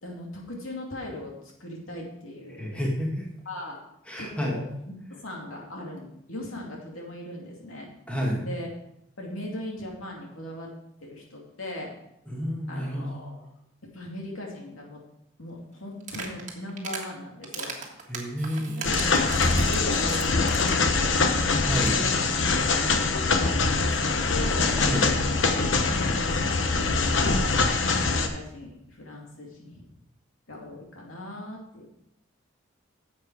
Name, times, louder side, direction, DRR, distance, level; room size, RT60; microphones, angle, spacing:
voice 1, 0.0-2.8 3.4-3.8 4.2-4.7 5.1-7.9 8.4-8.7 9.2-10.7 11.0-11.9 12.7-13.4 13.9-15.0 15.4-17.8 18.8-21.4 21.9-22.2 22.5-24.7 25.8-26.6 27.1-29.8 30.5-31.9, left 1 dB, 85° left, -1 dB, 2.6 m, -39 dB
voice 2, 2.6-3.3 4.1-4.6 8.1-8.4 12.3-13.2 18.1-19.3 21.6-22.0 24.8-25.2, equal, 5° left, -3 dB, 1.9 m, -30 dB
sound 1, 16.0-17.1 17.4-20.9 21.2-21.3 21.5-21.6 21.8-22.0, right 5 dB, 35° right, 1.7 m, -37 dB
sound 2, 18.8-28.3, left 3 dB, 65° left, 1.0 m, -23 dB
10.5 x 7.4 x 4.8 m, 0.80 s
head